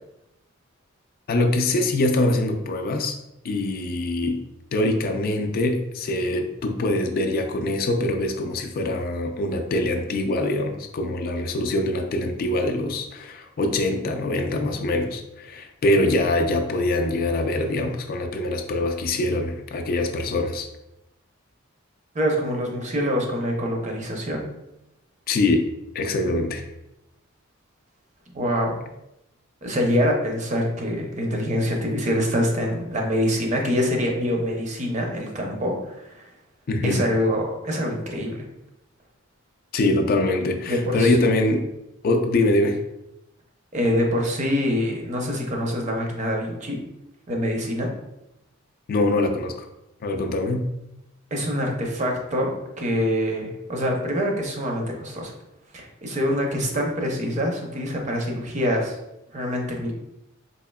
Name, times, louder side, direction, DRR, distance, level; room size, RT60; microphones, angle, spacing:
voice 1, 1.3-3.2 3.4-4.4 4.7-20.7 25.3-25.6 25.9-26.7 36.7-37.0 39.7-41.7 42.0-42.8 48.9-49.7 50.0-50.7, left 2 dB, 45° left, 5 dB, 0.4 m, -23 dB
voice 2, 22.1-24.5 28.3-28.8 29.6-36.3 36.8-38.4 40.7-41.1 43.7-46.8 47.3-47.9 51.3-55.3 55.7-59.0 59.3-59.9, equal, 35° right, 1 dB, 0.6 m, -25 dB
4.2 x 2.8 x 2.2 m, 0.87 s
head